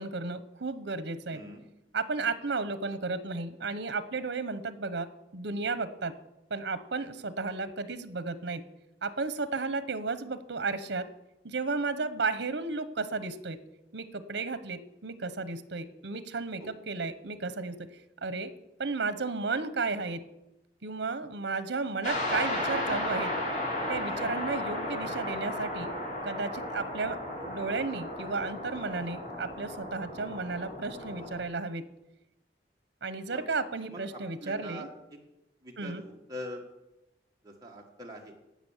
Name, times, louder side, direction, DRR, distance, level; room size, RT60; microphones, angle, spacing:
voice 1, 0.0-1.4 1.9-5.1 5.3-6.1 6.5-8.6 9.0-11.1 11.4-13.6 13.9-17.9 18.2-18.5 18.8-20.2 20.8-23.3 23.9-25.9 26.2-31.9 33.0-34.9 35.8-36.0, right 3 dB, 80° right, 13 dB, 0.9 m, -33 dB
voice 2, 1.3-1.6 16.6-16.8 24.1-24.3 33.3-33.5 33.9-34.9 35.6-36.6 37.4-38.3, equal, 20° right, -1 dB, 1.5 m, -43 dB
sound 1, 22.0-31.4, left 1 dB, 40° left, 3.4 m, -34 dB
17.5 x 6.0 x 7.2 m, 0.94 s
head